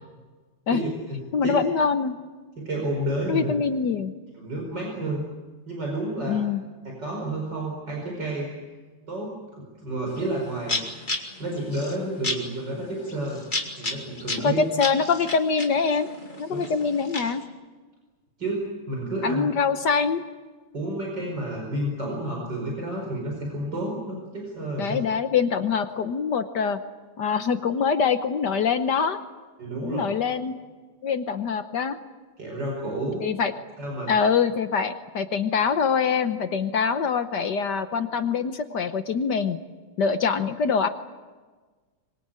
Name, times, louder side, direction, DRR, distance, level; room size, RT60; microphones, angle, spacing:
voice 1, 0.7-1.5 2.6-3.5 4.4-5.2 5.7-6.4 6.8-8.5 9.1-10.8 11.4-13.4 13.8-14.6 16.5-16.6 18.4-19.4 20.7-25.0 29.6-30.0 32.4-33.3 33.8-34.1, right 1 dB, 60° right, -1 dB, 5.6 m, -30 dB
voice 2, 1.3-2.2 3.3-4.1 6.3-6.6 14.4-16.1 16.4-17.4 19.2-20.2 24.8-26.8 27.2-29.2 29.8-30.6 31.0-32.0 33.2-33.5 34.1-39.6 40.0-40.9, left 5 dB, 60° left, 9 dB, 1.5 m, -24 dB
sound 1, 10.2-10.3 10.6-17.4, left 2 dB, 25° left, 2.5 m, -33 dB
25.0 x 22.5 x 8.9 m, 1.4 s
omnidirectional pair, 2.1 m